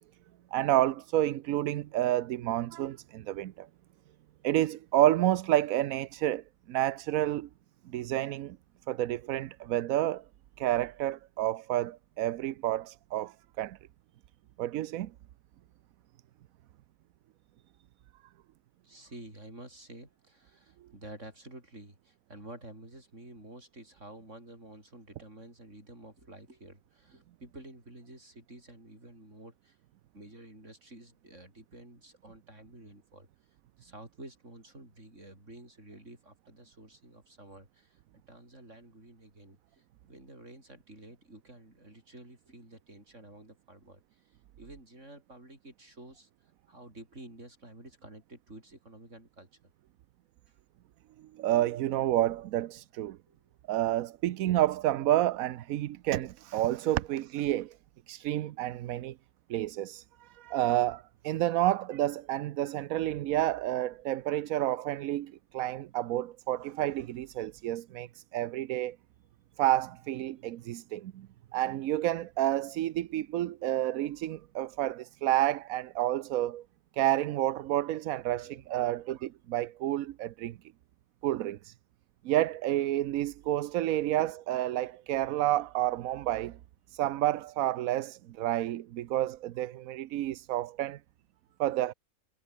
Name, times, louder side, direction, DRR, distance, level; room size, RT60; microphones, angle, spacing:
voice 1, 0.5-3.7 4.4-7.5 7.9-8.6 8.9-10.2 10.6-13.8 14.6-15.1 51.4-53.2 53.7-57.7 58.1-59.1 59.5-69.0 69.6-71.3 71.5-76.6 76.9-80.6 81.2-81.7 82.2-86.6 86.9-91.0 91.6-91.9, right 14 dB, 70° right, 1.0 m, -29 dB
voice 2, 18.8-29.8 30.1-33.3 33.8-37.9 38.3-39.8 40.1-44.0 44.6-46.3 46.7-49.5 53.3-53.4 66.7-66.8 78.4-79.1, right 1 dB, 55° right, 7.9 m, -50 dB
omnidirectional pair, 1.6 m